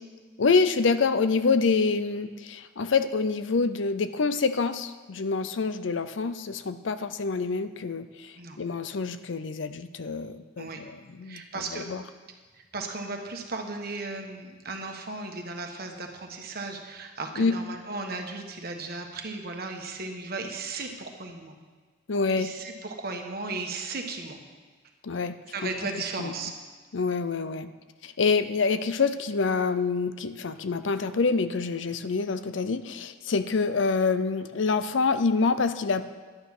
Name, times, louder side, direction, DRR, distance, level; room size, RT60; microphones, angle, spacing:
voice 1, 0.4-11.4 11.7-12.0 17.4-17.5 22.1-22.5 25.0-25.3 25.6-25.7 26.2-26.3 26.9-27.7 28.0-36.1, left 4 dB, 70° left, 12 dB, 0.6 m, -26 dB
voice 2, 11.2-11.9 12.5-21.5 22.3-24.4 25.5-26.5, right 3 dB, 50° right, 4 dB, 1.4 m, -36 dB
11.0 x 9.5 x 6.0 m, 1.4 s
head